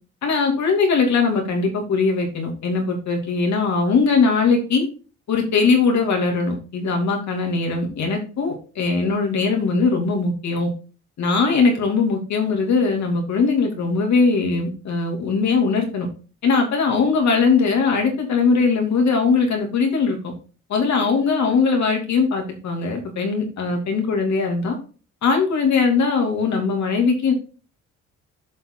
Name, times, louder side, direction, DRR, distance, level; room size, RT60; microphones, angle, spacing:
voice 1, 0.2-4.9 5.3-10.7 11.2-16.1 16.4-20.2 20.7-24.8 25.2-27.3, left 4 dB, 65° left, 2 dB, 2.8 m, -20 dB
7.6 x 5.8 x 3.9 m, 0.37 s
cardioid pair, 90°, 30 cm